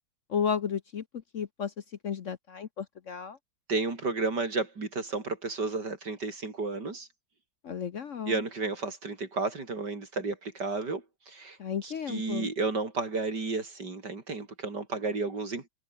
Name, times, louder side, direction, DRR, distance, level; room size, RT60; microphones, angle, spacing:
voice 1, 0.3-1.7 2.0-3.4 7.6-8.4 11.6-12.5, left 7 dB, 50° left, 1.1 m, -33 dB
voice 2, 3.7-7.1 8.2-15.7, right 3 dB, 70° right, 4.7 m, -32 dB
omnidirectional pair, 1.9 m